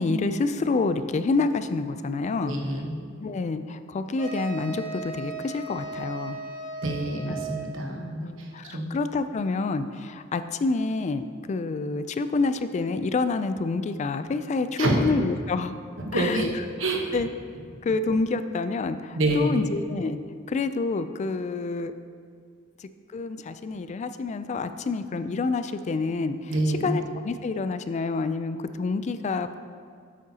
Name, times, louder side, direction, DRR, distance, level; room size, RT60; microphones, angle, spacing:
voice 1, 0.0-2.5 3.2-6.4 8.5-15.8 16.1-16.5 17.1-17.3 17.8-20.2 20.5-21.9 22.8-26.5 26.8-29.5, left 3 dB, 35° left, 11 dB, 0.3 m, -28 dB
voice 2, 2.4-3.0 6.8-8.9 14.8-15.0 16.0-16.5 16.8-17.2 19.1-19.6 26.5-27.0, right 1 dB, 75° right, 1 dB, 1.1 m, -27 dB
sound 1, 4.2-7.8, right 3 dB, 15° right, 1.5 m, -36 dB
8.6 x 8.4 x 2.8 m, 2.1 s
head